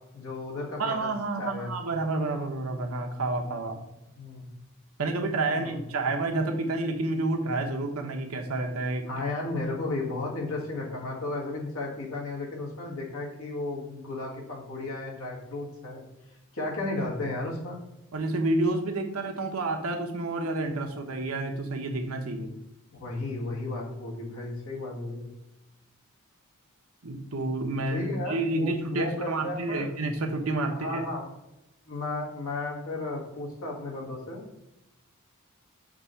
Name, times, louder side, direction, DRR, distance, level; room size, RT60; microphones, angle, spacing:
voice 1, 0.1-1.1 1.4-1.7 4.2-4.5 5.5-5.8 9.1-16.1 16.5-17.8 22.9-25.2 27.9-29.9 30.7-31.3 31.9-34.6, left 2 dB, 70° left, -2 dB, 1.7 m, -34 dB
voice 2, 0.8-3.8 5.0-9.1 18.1-22.5 27.0-31.1, right 2 dB, 75° right, 3 dB, 1.0 m, -29 dB
5.9 x 3.1 x 5.7 m, 0.94 s
head